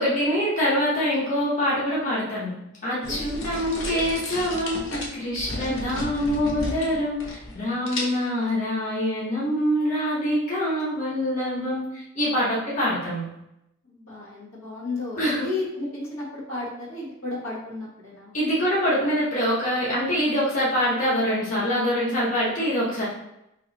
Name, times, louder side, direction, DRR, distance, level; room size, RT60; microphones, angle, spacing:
voice 1, 0.0-2.5 2.8-4.8 5.1-13.2 15.2-15.5 18.3-23.1, equal, 35° left, -8 dB, 1.0 m, -25 dB
sound 1, 3.0-7.6 7.9-8.4, left 2 dB, 60° left, 0.8 m, -33 dB
voice 2, 3.1-4.0 5.5-6.0 13.9-18.3, left 2 dB, 75° left, -6 dB, 1.4 m, -34 dB
3.0 x 2.9 x 4.0 m, 0.86 s
head